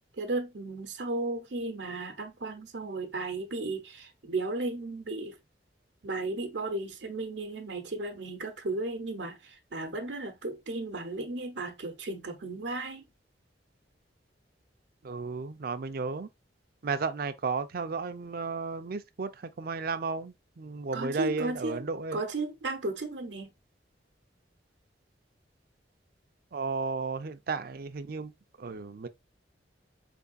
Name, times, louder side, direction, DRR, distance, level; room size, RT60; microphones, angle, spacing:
voice 1, 0.2-5.4 6.0-13.0 20.9-21.9 22.1-23.5, right 2 dB, 85° right, 0.9 m, -35 dB
voice 2, 15.0-16.3 16.8-22.2 26.5-28.3 28.6-29.1, right 4 dB, 55° right, 0.5 m, -34 dB
4.6 x 3.4 x 2.5 m
head